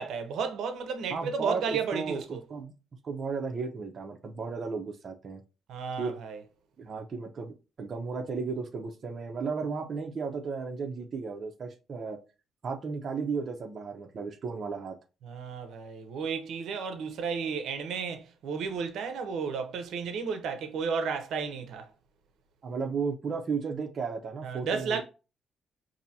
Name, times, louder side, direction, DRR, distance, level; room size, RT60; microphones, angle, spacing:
voice 1, 0.0-2.4 5.7-6.4 15.2-21.9 24.4-25.0, right 5 dB, 75° right, 0.7 m, -33 dB
voice 2, 1.1-2.2 2.5-2.7 3.0-5.4 6.0-6.1 6.8-12.2 12.6-14.9 22.6-25.0, right 5 dB, 35° right, 0.7 m, -34 dB
5.5 x 2.7 x 2.7 m
cardioid pair, 165°, 0 cm